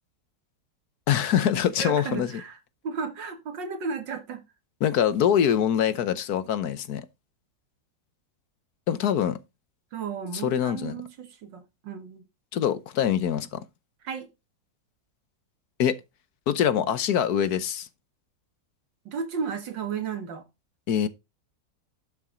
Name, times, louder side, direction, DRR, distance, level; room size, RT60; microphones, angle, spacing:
voice 1, 1.1-2.4 4.8-7.1 8.9-9.4 10.4-11.0 12.5-13.6 15.8-16.0 16.5-17.9 20.9-21.1, left 9 dB, 65° left, 1.3 m, -24 dB
voice 2, 1.8-2.6 2.8-4.4 9.9-12.2 14.0-14.3 19.1-20.4, right 6 dB, 90° right, 2.3 m, -34 dB
12.0 x 6.0 x 3.9 m
omnidirectional pair, 1.9 m